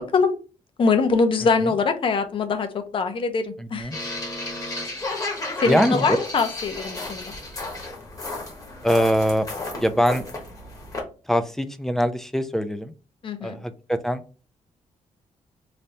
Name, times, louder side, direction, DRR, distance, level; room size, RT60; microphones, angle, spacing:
voice 1, 0.8-3.9 5.6-7.3 13.2-13.6, left 4 dB, 45° left, 8 dB, 0.6 m, -23 dB
voice 2, 3.6-4.0 5.7-6.2 8.8-9.5 9.8-10.2 11.3-12.9 13.4-14.2, equal, 5° left, 9 dB, 0.3 m, -22 dB
sound 1, 3.9-11.0, left 2 dB, 25° left, 1.1 m, -33 dB
3.3 x 2.6 x 4.1 m, 0.35 s
wide cardioid pair, 155°, 12 cm